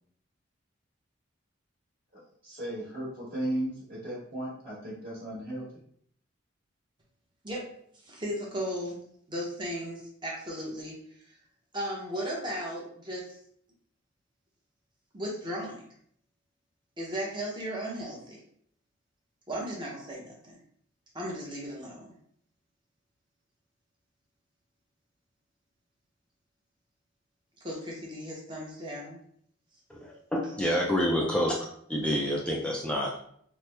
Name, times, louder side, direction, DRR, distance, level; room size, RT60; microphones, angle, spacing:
voice 1, 2.1-5.7, right 1 dB, 45° right, -8 dB, 1.2 m, -35 dB
voice 2, 8.0-9.0 9.3-11.0 11.7-13.3 15.1-15.8 17.0-18.4 19.5-20.6 21.1-22.1 27.6-29.2, equal, 25° right, -3 dB, 0.7 m, -36 dB
voice 3, 29.9-33.2, equal, 5° left, -2 dB, 0.3 m, -28 dB
3.1 x 2.0 x 3.2 m, 0.65 s
head